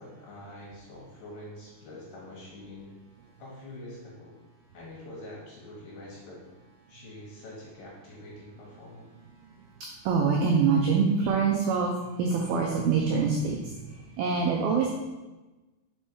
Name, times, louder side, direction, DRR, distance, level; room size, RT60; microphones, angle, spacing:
voice 1, 0.0-2.9 3.4-4.4 4.7-6.4 6.9-9.1, left 1 dB, 60° left, -4 dB, 2.7 m, -45 dB
voice 2, 10.0-14.9, right 5 dB, 85° right, 0 dB, 2.1 m, -25 dB
5.9 x 5.5 x 4.7 m, 1.1 s
omnidirectional pair, 5.2 m